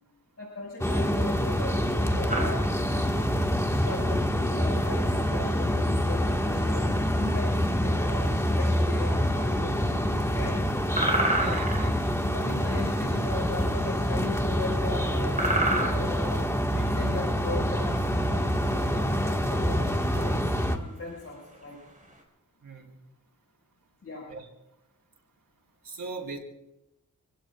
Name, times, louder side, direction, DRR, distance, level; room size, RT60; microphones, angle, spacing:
voice 1, 0.4-2.6 3.0-3.3 3.7-10.6 12.2-21.8 24.0-24.3, left 2 dB, 50° left, -3 dB, 6.1 m, -38 dB
sound 1, 0.8-20.8, equal, 10° left, 1.7 m, -26 dB
sound 2, 2.3-22.2, right 2 dB, 25° right, 5.3 m, -34 dB
voice 2, 11.3-12.1 22.6-22.9 24.3-24.5 25.8-26.4, right 4 dB, 85° right, 0 dB, 4.3 m, -39 dB
28.0 x 16.0 x 2.5 m, 0.95 s
wide cardioid pair, 80°, 33 cm